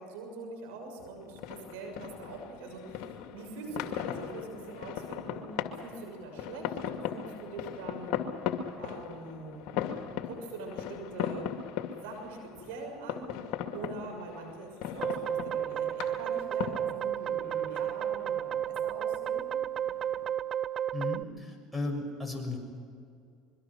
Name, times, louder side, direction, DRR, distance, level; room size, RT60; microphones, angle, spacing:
voice 1, 0.0-5.5 5.8-8.2 8.8-9.8 10.2-11.6 12.0-13.3 13.7-19.5, right 3 dB, 80° right, 3 dB, 6.5 m, -43 dB
sound 1, 1.0-20.3, left 9 dB, 65° left, 2.4 m, -39 dB
sound 2, 15.0-21.2, right 10 dB, 45° right, 0.6 m, -32 dB
voice 2, 20.9-22.6, left 2 dB, ahead, 3 dB, 6.6 m, -35 dB
25.5 x 23.5 x 6.2 m, 2.4 s
supercardioid pair, 90°, 0 cm